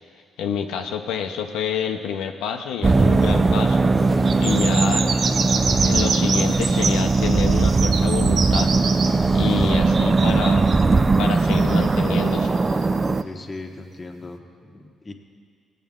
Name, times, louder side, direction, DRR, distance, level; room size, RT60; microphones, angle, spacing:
voice 1, 0.4-3.9 4.4-5.1 5.8-8.7 9.3-10.7 11.2-12.6, left 7 dB, 90° left, 4 dB, 0.6 m, -28 dB
sound 1, 2.8-13.2, right 3 dB, 25° right, 0.3 m, -19 dB
sound 2, 4.3-10.9 11.5-13.0, right 5 dB, 55° right, 0.6 m, -28 dB
voice 2, 13.2-15.1, left 2 dB, 25° left, 3 dB, 1.1 m, -38 dB
17.5 x 8.3 x 3.6 m, 2.1 s
cardioid pair, 90°, 0 cm